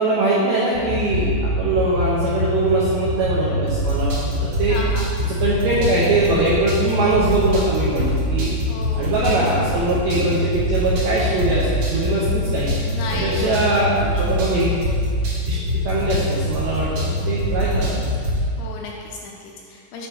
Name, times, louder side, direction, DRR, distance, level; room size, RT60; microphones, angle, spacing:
voice 1, 0.0-4.8 5.3-8.5 8.9-12.7 13.1-14.7 15.5-15.6 15.8-18.1, right 2 dB, 90° right, -7 dB, 2.1 m, -21 dB
sound 1, 0.7-18.5, left 1 dB, 70° right, 1.9 m, -24 dB
voice 2, 4.7-5.3 8.7-9.1 12.9-13.9 18.6-20.1, left 4 dB, 80° left, -1 dB, 2.6 m, -34 dB
8.5 x 4.4 x 3.3 m, 2.3 s
omnidirectional pair, 5.3 m